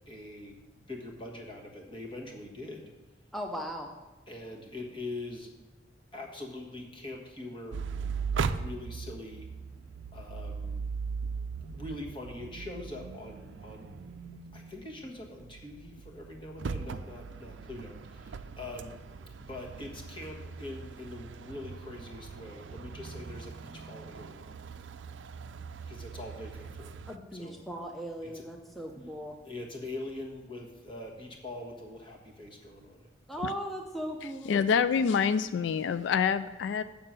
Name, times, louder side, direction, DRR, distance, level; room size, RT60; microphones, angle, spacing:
voice 1, 0.0-0.6 0.9-2.9 4.3-5.5 6.1-7.8 8.5-9.5 10.1-10.8 11.6-13.9 14.5-19.0 19.5-24.5 25.9-27.0 27.3-27.6 28.2-28.5 29.4-33.1 33.4-33.5, left 2 dB, 25° left, 0 dB, 1.4 m, -43 dB
voice 2, 3.3-3.9 27.1-29.4 33.3-34.6, equal, ahead, 2 dB, 0.6 m, -38 dB
sound 1, 7.7-27.2, right 5 dB, 80° right, 0.4 m, -39 dB
voice 3, 34.5-36.8, left 6 dB, 75° left, 14 dB, 0.3 m, -26 dB
7.0 x 6.6 x 7.4 m, 1.1 s
head